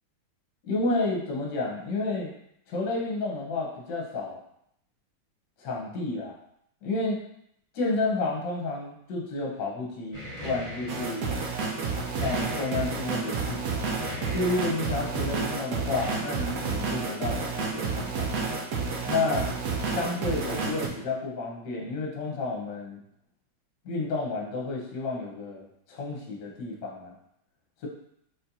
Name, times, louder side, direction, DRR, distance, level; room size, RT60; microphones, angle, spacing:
voice 1, 0.6-2.3 2.7-4.4 5.6-6.3 6.8-7.2 7.7-11.3 12.2-13.8 14.3-18.3 19.1-19.5 19.9-23.0 23.8-27.1, left 3 dB, 60° left, -2 dB, 1.5 m, -31 dB
sound 1, 10.1-11.2 12.2-13.0 14.0-14.8 15.9-16.1, left 1 dB, 15° right, 1.6 m, -39 dB
sound 2, 10.9-20.9, right 4 dB, 70° right, 0.8 m, -30 dB
4.3 x 4.2 x 2.7 m, 0.73 s
omnidirectional pair, 2.2 m